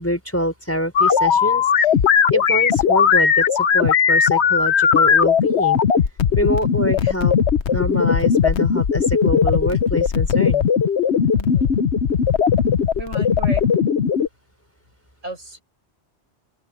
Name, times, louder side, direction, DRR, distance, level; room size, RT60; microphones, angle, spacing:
voice 1, 0.0-1.9 2.3-5.8 6.4-7.4 7.7-10.7, equal, 10° left, 5.3 m, -25 dB
sound 1, 1.0-14.3, left 7 dB, 70° left, 1.2 m, -18 dB
voice 2, 11.4-11.7 13.0-13.6 15.2-15.6, right 2 dB, 85° right, 7.6 m, -33 dB
open air
omnidirectional pair, 1.2 m